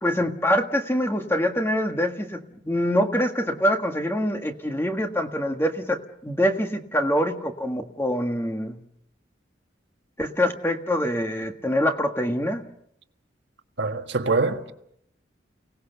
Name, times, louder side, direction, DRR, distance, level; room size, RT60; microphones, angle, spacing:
voice 1, 0.0-8.8 10.2-12.7, equal, 15° left, 1.6 m, -25 dB
voice 2, 13.8-14.7, right 3 dB, 70° right, 1.7 m, -24 dB
29.5 x 18.5 x 6.9 m
head